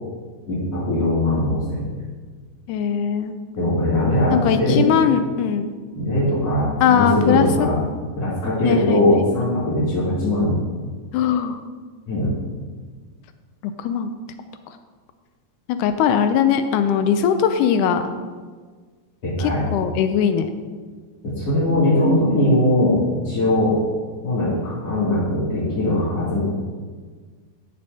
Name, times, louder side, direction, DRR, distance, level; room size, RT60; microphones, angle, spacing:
voice 1, 0.5-1.9 3.6-4.8 5.9-7.7 8.2-10.6 12.1-12.3 19.2-19.6 21.2-23.7 24.2-26.4, left 1 dB, 45° left, -12 dB, 3.5 m, -20 dB
voice 2, 2.7-3.3 4.3-5.7 6.8-7.7 8.6-9.5 11.1-11.6 13.6-14.1 14.7-14.8 15.7-18.0 19.4-20.5, left 8 dB, 80° left, 8 dB, 1.8 m, -20 dB
15.5 x 6.8 x 2.8 m, 1.5 s
omnidirectional pair, 4.1 m